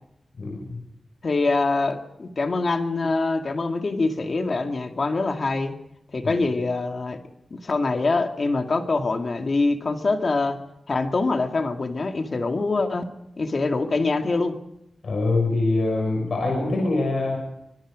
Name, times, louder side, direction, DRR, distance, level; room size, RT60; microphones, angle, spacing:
voice 1, 0.4-0.8 6.2-6.3 15.0-17.4, left 2 dB, 65° left, 0 dB, 6.3 m, -24 dB
voice 2, 1.2-5.7 6.1-7.2 7.5-10.6 10.9-13.1 13.4-14.6, left 3 dB, 45° left, 5 dB, 2.1 m, -24 dB
25.5 x 21.5 x 5.1 m, 0.84 s
wide cardioid pair, 140°, 0 cm